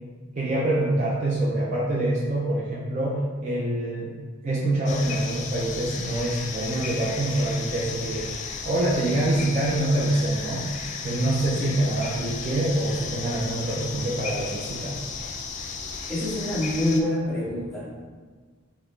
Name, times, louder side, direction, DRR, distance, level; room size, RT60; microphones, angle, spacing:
voice 1, 0.3-4.1 4.4-8.3 8.6-10.6 11.0-15.1, right 1 dB, 35° right, -6 dB, 0.5 m, -25 dB
sound 1, 4.9-17.0, left 5 dB, 35° left, 0.3 m, -34 dB
voice 2, 16.1-18.0, left 1 dB, ahead, -11 dB, 1.4 m, -26 dB
5.8 x 2.3 x 3.2 m, 1.5 s
head